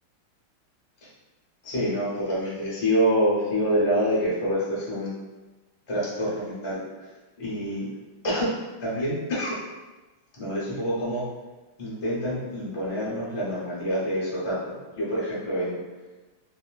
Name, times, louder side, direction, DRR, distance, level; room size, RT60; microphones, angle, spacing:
voice 1, 1.6-5.2 5.9-6.8 7.4-7.9 8.2-8.5 8.8-9.6 10.4-11.3 11.8-14.6 14.9-15.8, equal, 55° left, -8 dB, 0.3 m, -26 dB
3.4 x 2.4 x 2.2 m, 1.2 s
omnidirectional pair, 2.2 m